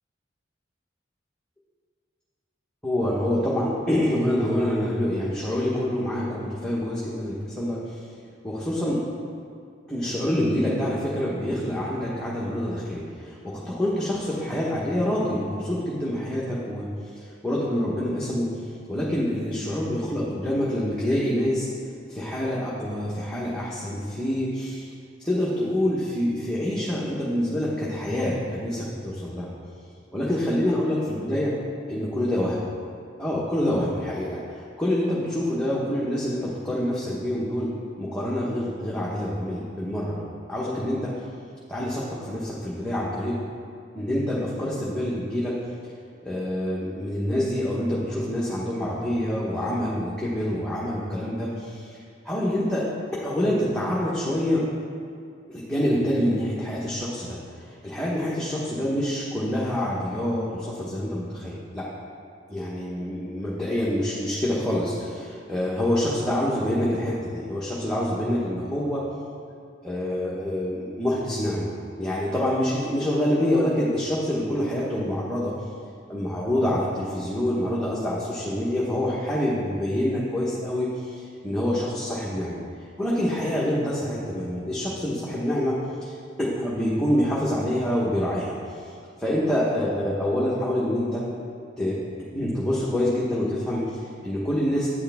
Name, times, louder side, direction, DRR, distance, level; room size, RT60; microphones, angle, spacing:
voice 1, 2.8-7.9 8.4-9.0 9.9-16.9 17.1-18.6 18.9-21.7 22.1-24.9 25.2-29.5 30.1-31.5 31.9-32.6 33.2-37.7 38.0-41.1 41.7-43.4 43.9-45.5 46.2-52.0 52.2-52.9 53.2-54.6 55.5-61.9 62.5-69.0 69.8-71.7 72.0-75.5 76.1-82.6 83.0-85.8 86.0-86.1 86.4-88.9 89.2-91.2 91.8-92.0 92.3-94.9, left 1 dB, 5° left, -7 dB, 1.1 m, -26 dB
9.7 x 8.4 x 3.5 m, 2.3 s
head